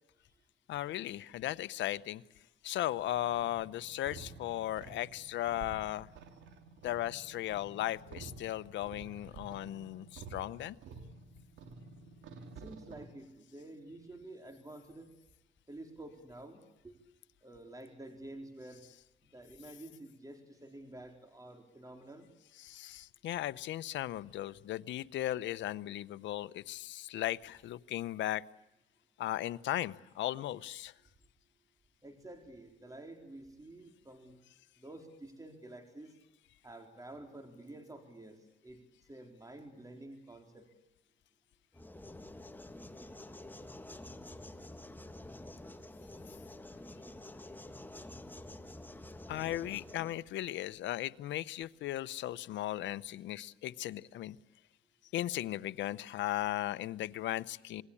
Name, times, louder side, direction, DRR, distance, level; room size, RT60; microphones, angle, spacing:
voice 1, 0.7-2.2 2.6-6.1 6.8-10.8 22.6-28.4 29.2-30.9 49.3-54.4 55.1-57.8, left 14 dB, 85° left, 15 dB, 0.9 m, -37 dB
sound 1, 3.1-13.0, right 4 dB, 85° right, 3.2 m, -51 dB
voice 2, 12.4-15.1 15.7-16.9 17.4-18.8 19.3-22.3 32.0-34.4 34.8-36.2 36.6-38.8 39.1-40.7, right 1 dB, 20° right, 4 dB, 4.1 m, -50 dB
sound 2, 41.7-50.2, left 1 dB, 10° left, 1.6 m, -48 dB
27.5 x 21.0 x 8.6 m, 0.95 s
cardioid pair, 85°, 19 cm